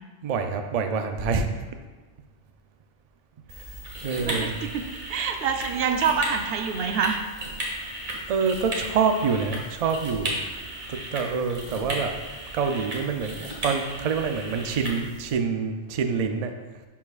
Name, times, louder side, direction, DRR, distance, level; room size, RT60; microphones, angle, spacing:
voice 1, 0.2-1.5 4.0-4.6 8.3-10.4 10.9-12.1 12.5-16.5, right 5 dB, 85° right, 6 dB, 0.3 m, -26 dB
sound 1, 3.5-15.3, right 1 dB, 40° right, 1.4 m, -35 dB
voice 2, 4.2-7.2, right 6 dB, 60° right, 6 dB, 0.7 m, -26 dB
11.0 x 4.7 x 2.4 m, 1.3 s
omnidirectional pair, 1.3 m